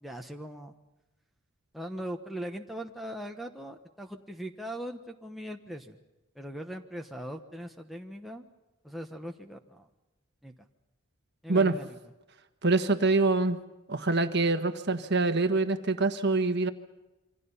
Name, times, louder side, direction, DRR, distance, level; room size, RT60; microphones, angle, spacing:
voice 1, 0.0-0.7 1.7-6.0 6.3-8.4 8.8-9.9 10.4-10.5 11.4-12.0, equal, ahead, 2 dB, 1.1 m, -40 dB
voice 2, 12.6-13.6 13.9-16.7, right 3 dB, 50° right, 8 dB, 1.4 m, -25 dB
28.0 x 25.0 x 5.7 m, 1.0 s
head